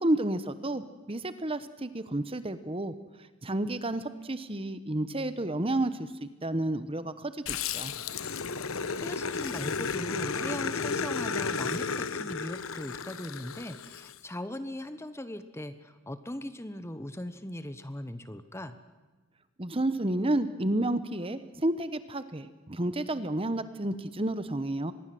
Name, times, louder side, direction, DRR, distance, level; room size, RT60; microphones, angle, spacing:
voice 1, 0.0-2.9 3.4-7.9 19.6-24.9, right 1 dB, 25° right, 12 dB, 1.0 m, -31 dB
Growling, 7.5-14.1, left 5 dB, 65° left, 1.0 m, -33 dB
voice 2, 8.9-18.8, left 1 dB, 10° left, 11 dB, 1.0 m, -39 dB
25.0 x 21.0 x 7.8 m, 1.3 s
head